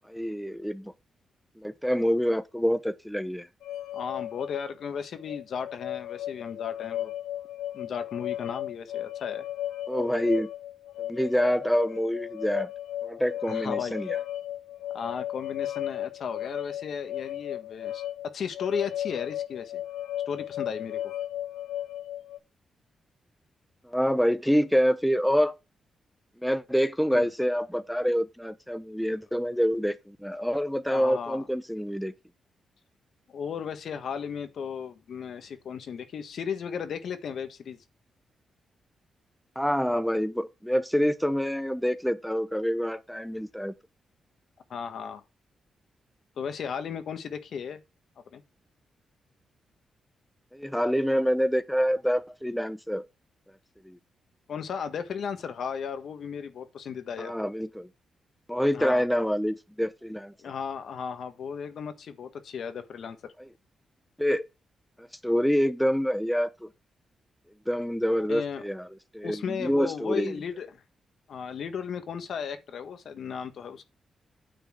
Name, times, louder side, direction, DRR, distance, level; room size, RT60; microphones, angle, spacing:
voice 1, 0.1-0.9 1.6-3.5 9.9-10.5 11.1-12.7 13.0-14.2 23.8-25.5 26.4-32.1 39.6-43.7 50.5-53.0 53.9-54.0 57.2-57.9 58.5-60.3 63.4-63.5 64.2-64.5 65.0-66.7 67.7-68.9 69.1-70.3, equal, ahead, 0.7 m, -26 dB
sound 1, 3.6-22.4, left 12 dB, 90° left, 0.9 m, -35 dB
voice 2, 3.9-7.1 7.7-9.5 13.5-14.1 14.9-18.0 18.3-19.8 20.3-21.1 27.1-27.3 30.9-31.4 33.3-37.8 44.7-45.2 46.4-47.8 48.3-48.4 54.5-57.3 58.7-59.0 60.4-63.3 68.3-68.6 69.2-70.8 71.3-73.8, left 7 dB, 70° left, 1.6 m, -35 dB
9.3 x 4.4 x 7.5 m
cardioid pair, 90°, 0 cm